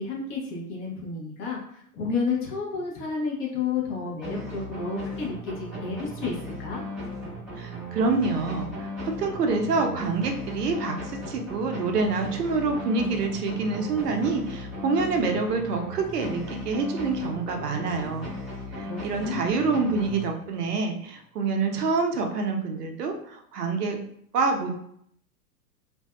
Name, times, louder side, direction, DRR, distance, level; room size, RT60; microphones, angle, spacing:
voice 1, 0.0-6.8 18.8-19.4, left 5 dB, 30° left, -3 dB, 0.7 m, -31 dB
sound 1, 4.2-20.7, left 1 dB, ahead, 1.2 m, -36 dB
voice 2, 7.6-18.3 18.7-24.0 24.3-24.7, right 4 dB, 80° right, 4 dB, 0.6 m, -27 dB
2.5 x 2.2 x 2.3 m, 0.68 s
hypercardioid pair, 105°, 46 cm